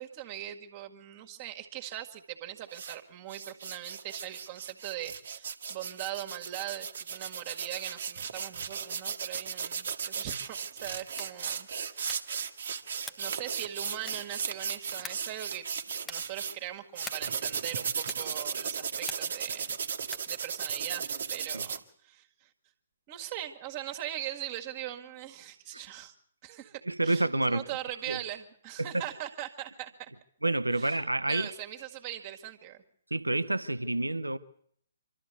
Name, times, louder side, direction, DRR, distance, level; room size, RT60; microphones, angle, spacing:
voice 1, 0.0-12.3 13.2-15.7 16.1-19.8 20.3-22.5 23.1-26.1 26.4-30.1 30.7-31.0 31.3-32.8, right 13 dB, 35° right, 1.9 m, -41 dB
sound 1, 2.7-3.0 3.3-16.5 17.0-21.8, right 6 dB, 55° right, 1.4 m, -36 dB
sound 2, 11.1-11.4 12.0-12.4 13.0-13.4 14.0-14.4 15.0-15.4 16.0-16.4 17.0-17.4 18.0-18.4 19.0-19.5 20.0-20.4, left 2 dB, 10° left, 1.1 m, -44 dB
voice 2, 26.9-27.7 28.1-28.2 28.8-29.0 30.4-31.5 33.1-34.4, right 2 dB, 85° right, 0.9 m, -28 dB
25.5 x 13.0 x 8.3 m
figure-of-eight pair, 130°, 0 cm